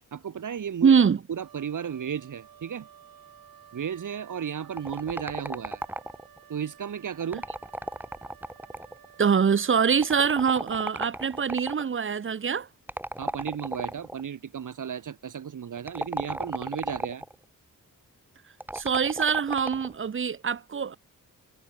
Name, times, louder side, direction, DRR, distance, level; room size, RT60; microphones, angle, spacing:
voice 1, 0.1-0.9 1.3-2.9 3.7-5.8 6.5-7.4 13.2-17.2, right 8 dB, 60° right, 2.5 m, -34 dB
voice 2, 0.8-1.2 9.2-12.7 18.7-21.0, right 6 dB, 35° right, 0.9 m, -24 dB
Wind instrument woodwind instrument, 1.3-10.5, right 9 dB, 90° right, 4.6 m, -53 dB
sound 1, 4.8-6.4 7.2-9.1 10.0-11.9 12.9-14.2 15.8-17.3 18.6-19.9, right 1 dB, 5° right, 1.3 m, -35 dB
wide cardioid pair, 120°, 34 cm